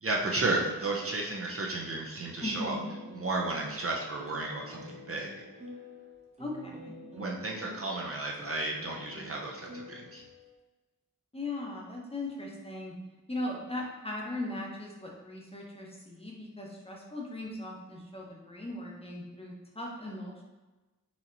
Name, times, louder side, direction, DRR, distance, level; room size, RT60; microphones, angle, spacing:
voice 1, 0.0-2.8 3.2-5.4 7.2-10.2, right 2 dB, 45° right, -1 dB, 0.5 m, -33 dB
voice 2, 2.4-3.0 6.4-7.0 11.3-12.9 13.3-20.4, left 2 dB, 20° left, -2 dB, 0.7 m, -38 dB
sound 1, 2.4-10.5, equal, 20° right, 0.9 m, -48 dB
4.3 x 2.8 x 2.5 m, 1.2 s
wide cardioid pair, 80°, 33 cm